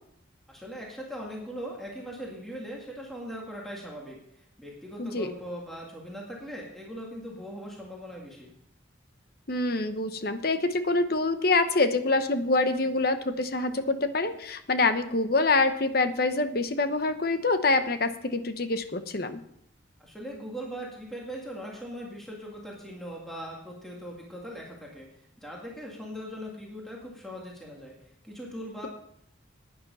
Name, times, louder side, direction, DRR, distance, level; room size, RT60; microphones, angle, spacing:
voice 1, 0.5-4.2 4.6-8.5 20.0-25.1 25.4-27.9 28.2-28.9, equal, ahead, -3 dB, 2.0 m, -40 dB
voice 2, 5.0-5.3 9.5-19.4, left 3 dB, 50° left, 9 dB, 0.9 m, -26 dB
10.5 x 9.7 x 5.5 m, 0.75 s
head